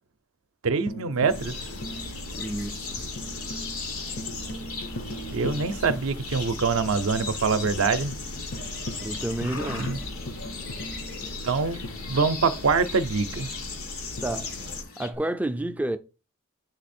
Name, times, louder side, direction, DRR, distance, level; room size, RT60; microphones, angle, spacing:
voice 1, 0.6-1.7 5.2-8.1 9.7-10.0 11.4-11.8 12.1-13.5, right 4 dB, 65° right, 0.5 m, -25 dB
Tambourine, 0.9-6.6 6.9-7.0 7.3-7.8 8.1-8.2 8.5-12.6 14.2-15.2, equal, 50° left, 0.7 m, -40 dB
sound 1, 1.3-14.8, left 2 dB, 90° left, 1.5 m, -36 dB
Livestock farm animals working animals, 1.4-15.1, left 4 dB, 65° left, 1.3 m, -43 dB
voice 2, 2.3-3.1 9.0-10.0 14.2-14.5 15.0-16.0, right 1 dB, 5° right, 0.4 m, -30 dB
8.0 x 3.4 x 4.2 m
head